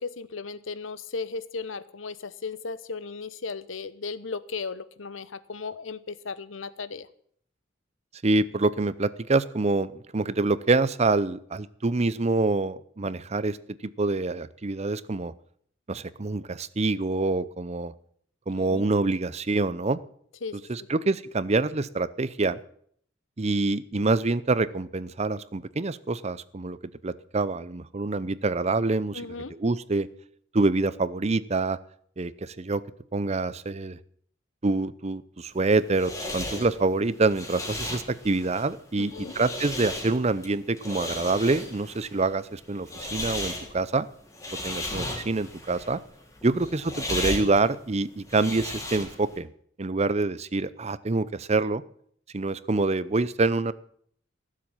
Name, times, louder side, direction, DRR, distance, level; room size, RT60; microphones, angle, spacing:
voice 1, 0.0-7.1 18.7-18.9 20.4-20.5 29.1-29.5 39.0-39.3, left 4 dB, 90° left, 15 dB, 0.9 m, -36 dB
voice 2, 8.2-13.6 13.8-15.3 15.9-17.9 18.5-20.0 20.7-22.6 23.4-26.8 27.0-29.2 29.5-30.1 30.5-31.8 32.2-32.8 33.1-34.0 34.6-44.1 44.6-46.0 46.4-49.5 49.8-51.8 52.3-53.7, right 3 dB, 35° right, 17 dB, 0.6 m, -26 dB
sound 1, 35.5-49.4, left 2 dB, 15° left, 3.4 m, -36 dB
17.0 x 7.6 x 8.9 m, 0.62 s
head